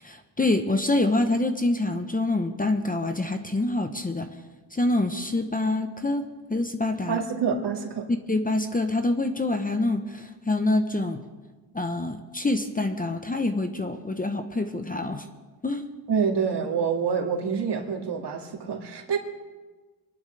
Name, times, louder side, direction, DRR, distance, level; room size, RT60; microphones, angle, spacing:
voice 1, 0.0-4.3 4.7-7.2 8.3-11.2 11.7-15.3 15.6-15.9, left 2 dB, 20° left, 7 dB, 0.9 m, -26 dB
voice 2, 7.1-8.1 16.1-19.2, right 6 dB, 55° right, 2 dB, 2.3 m, -27 dB
24.0 x 11.5 x 3.4 m, 1.3 s
cardioid pair, 85°, 47 cm